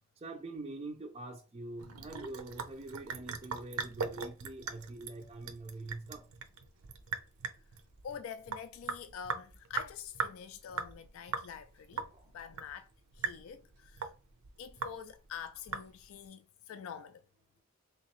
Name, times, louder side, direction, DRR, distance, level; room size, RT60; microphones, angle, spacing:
voice 1, 0.2-6.2 12.1-12.2, right 2 dB, 25° right, 0.3 m, -44 dB
Sink (filling or washing) / Drip, 1.8-16.3, right 5 dB, 75° right, 0.6 m, -41 dB
voice 2, 8.0-12.0 12.3-12.9 13.2-14.1 14.6-17.2, left 7 dB, 70° left, 0.3 m, -46 dB
3.4 x 2.8 x 3.0 m
head